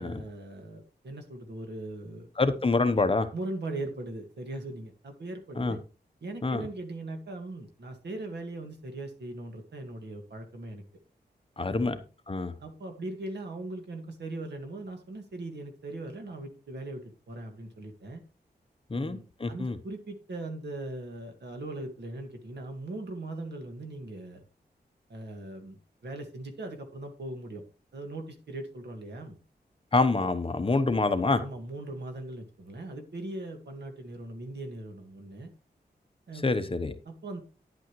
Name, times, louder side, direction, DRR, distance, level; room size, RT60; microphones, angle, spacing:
voice 1, 0.0-2.3 3.3-5.8 6.2-10.8 11.7-12.0 12.6-18.2 18.9-24.4 25.1-27.6 27.9-29.4 31.4-35.5 36.3-36.7 37.1-37.4, right 2 dB, 90° right, 1.8 m, -40 dB
voice 2, 2.4-3.3 5.6-5.8 6.4-6.7 11.6-12.0 12.3-12.5 18.9-19.8 29.9-31.4 36.4-36.9, left 3 dB, 30° left, 0.9 m, -26 dB
10.5 x 8.3 x 3.1 m
wide cardioid pair, 110°, 17 cm